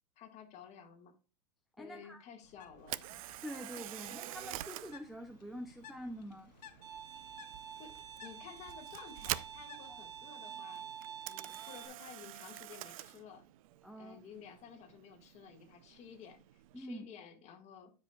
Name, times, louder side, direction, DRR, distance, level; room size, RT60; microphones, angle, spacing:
voice 1, 0.2-1.1 1.8-3.2 7.8-10.8 11.3-13.4 14.0-17.9, left 7 dB, 30° left, 4 dB, 1.7 m, -53 dB
voice 2, 1.8-2.2 3.4-6.5 9.9-10.0 13.8-14.2 16.7-17.1, equal, ahead, 2 dB, 0.5 m, -45 dB
Bird, 2.4-10.2, left 8 dB, 85° left, 1.0 m, -59 dB
Camera, 2.8-16.9, right 15 dB, 55° right, 0.5 m, -47 dB
Bowed string instrument, 6.8-11.9, right 9 dB, 70° right, 2.8 m, -48 dB
13.0 x 5.2 x 2.3 m, 0.34 s
hypercardioid pair, 130°, 21 cm